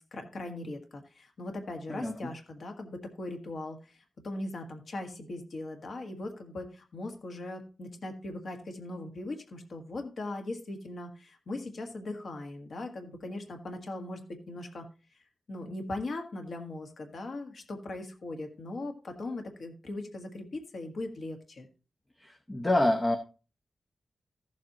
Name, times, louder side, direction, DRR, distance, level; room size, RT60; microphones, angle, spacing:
voice 1, 0.0-14.9 15.1-15.2 15.5-21.7, left 2 dB, 60° left, 4 dB, 1.6 m, -39 dB
voice 2, 1.9-2.3 22.2-23.2, left 1 dB, 20° left, 6 dB, 0.8 m, -27 dB
14.0 x 7.6 x 2.9 m, 0.33 s
wide cardioid pair, 155°, 0 cm